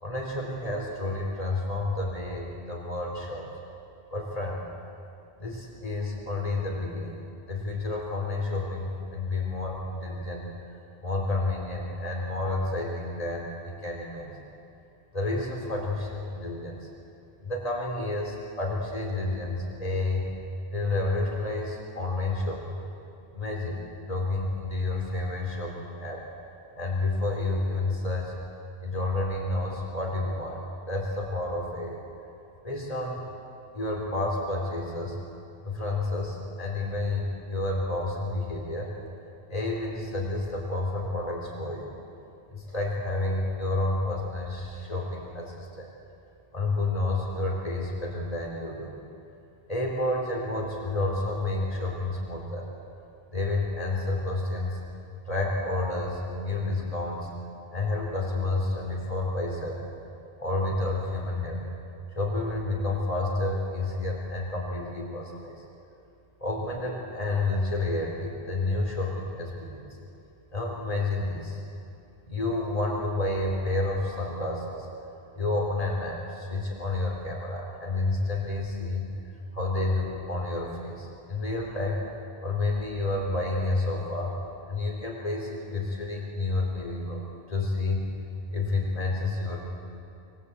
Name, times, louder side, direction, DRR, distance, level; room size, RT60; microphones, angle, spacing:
voice 1, 0.0-3.4 4.1-4.6 5.4-7.2 7.5-10.5 11.0-14.3 15.1-16.8 17.4-20.2 20.7-22.8 23.3-23.8 24.1-26.2 26.8-28.3 28.8-30.6 30.9-32.0 32.6-33.3 33.7-35.2 35.6-38.9 39.5-41.9 42.5-45.9 46.5-48.9 49.7-52.6 53.3-54.8 55.3-57.3 57.7-59.9 60.4-61.6 62.1-65.6 66.4-69.9 70.5-71.6 72.3-74.9 75.4-79.1 79.5-82.0 82.4-84.4 84.7-87.2 87.5-88.0 88.5-89.6, left 2 dB, 35° left, -1 dB, 4.0 m, -30 dB
28.0 x 20.5 x 8.5 m, 2.7 s
omnidirectional pair, 1.1 m